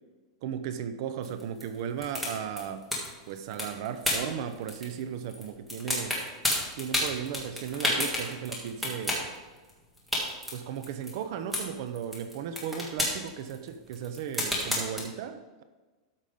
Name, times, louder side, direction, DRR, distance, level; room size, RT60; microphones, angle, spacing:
voice 1, 0.4-2.9 3.3-6.2 6.8-9.3 10.5-15.6, right 8 dB, 45° right, 10 dB, 0.6 m, -36 dB
sound 1, 1.2-5.0 5.3-5.4 5.7-9.3 9.7-9.8 10.0-11.1 11.5-11.7 11.9-15.0, left 1 dB, ahead, 1.7 m, -30 dB
13.0 x 5.4 x 5.1 m, 1.3 s
supercardioid pair, 170°, 3 cm